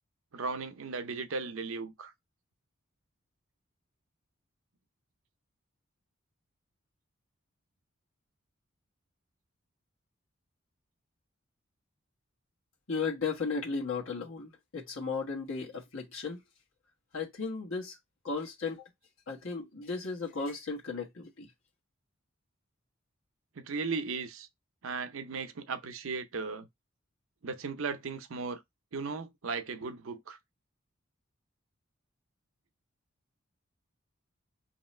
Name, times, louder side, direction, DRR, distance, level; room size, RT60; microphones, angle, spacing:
voice 1, 0.3-2.1 23.6-24.5 24.8-26.7 27.4-28.6 28.9-30.4, right 4 dB, 80° right, 0.6 m, -36 dB
voice 2, 12.9-16.4 17.1-18.0 18.2-18.9 19.3-21.5, left 4 dB, 75° left, 1.3 m, -35 dB
3.1 x 2.9 x 4.2 m
head